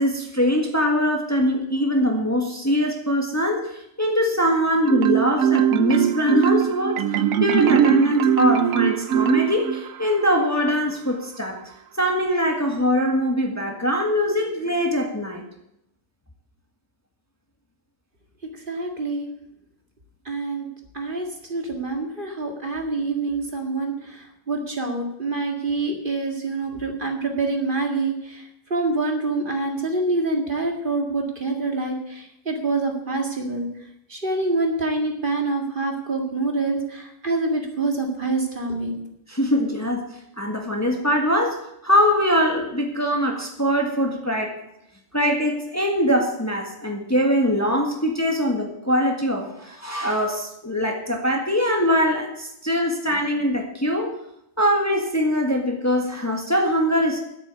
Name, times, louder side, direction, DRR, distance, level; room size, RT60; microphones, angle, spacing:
voice 1, 0.0-3.7 4.0-7.0 7.4-11.6 12.0-15.4 39.3-40.0 40.4-44.5 45.1-54.1 54.6-57.2, equal, 10° left, 2 dB, 1.6 m, -22 dB
Marimba xylophone, 4.9-10.0, right 10 dB, 90° right, 1.1 m, -20 dB
voice 2, 18.5-19.3 20.3-20.7 20.9-33.7 34.1-39.0, right 3 dB, 40° right, 2 dB, 2.1 m, -26 dB
10.5 x 8.5 x 8.2 m, 0.80 s
omnidirectional pair, 1.4 m